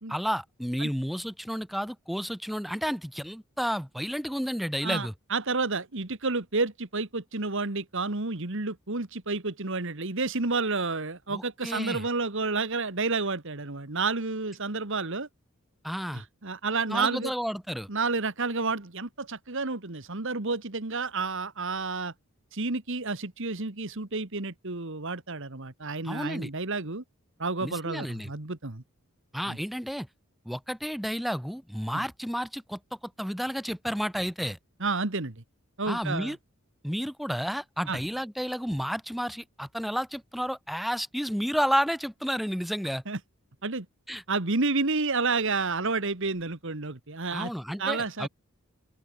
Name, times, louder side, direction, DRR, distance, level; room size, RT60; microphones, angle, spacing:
voice 1, 0.1-5.1 11.3-12.0 15.8-16.2 16.9-17.9 26.0-26.5 27.6-28.3 29.3-30.1 30.4-32.8 33.2-34.6 35.9-36.4 36.8-43.0 44.1-44.2 47.3-48.3, equal, ahead, 4.9 m, -31 dB
voice 2, 4.8-15.3 16.1-17.3 17.9-22.1 22.5-27.0 27.4-28.8 29.5-29.6 31.9-32.0 34.8-35.4 35.8-36.4 37.9-38.0 43.1-43.2 43.6-43.9 44.3-47.5 47.8-48.3, right 3 dB, 60° right, 1.9 m, -30 dB
open air
head